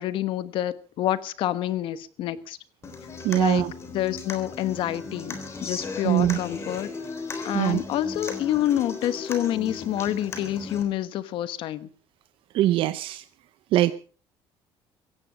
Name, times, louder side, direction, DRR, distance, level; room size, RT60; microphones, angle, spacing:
voice 1, 0.0-2.6 3.3-3.6 3.9-6.9 7.4-11.9, left 12 dB, 60° left, 1.2 m, -28 dB
Human voice / Acoustic guitar, 2.8-10.8, left 4 dB, 25° left, 3.7 m, -36 dB
voice 2, 3.2-3.7 6.0-6.4 7.5-7.8 12.5-13.2 13.7-13.9, right 14 dB, 65° right, 0.7 m, -22 dB
16.5 x 15.5 x 5.0 m
cardioid pair, 165°, 10 cm